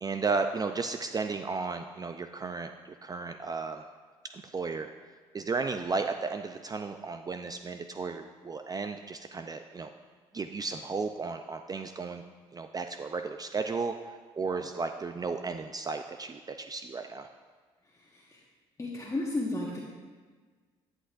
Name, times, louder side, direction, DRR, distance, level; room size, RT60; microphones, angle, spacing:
voice 1, 0.0-3.8 4.3-4.9 5.3-9.9 10.3-12.2 12.5-17.3, right 4 dB, 30° right, 7 dB, 0.5 m, -34 dB
voice 2, 17.8-18.4 18.8-19.8, left 2 dB, 25° left, -3 dB, 1.5 m, -34 dB
14.0 x 7.9 x 2.6 m, 1.5 s
hypercardioid pair, 60°, 14 cm